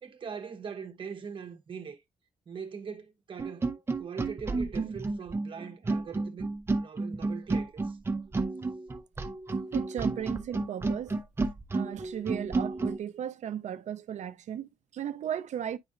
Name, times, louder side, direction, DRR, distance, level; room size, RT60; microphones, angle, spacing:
voice 1, 0.0-2.0 2.5-8.0 9.5-9.6, right 6 dB, 40° right, 1.0 m, -42 dB
sound 1, 3.4-13.0, right 3 dB, 20° right, 0.7 m, -31 dB
voice 2, 9.7-11.1 11.7-15.8, right 9 dB, 60° right, 0.6 m, -35 dB
9.6 x 4.1 x 2.5 m
wide cardioid pair, 165°, 13 cm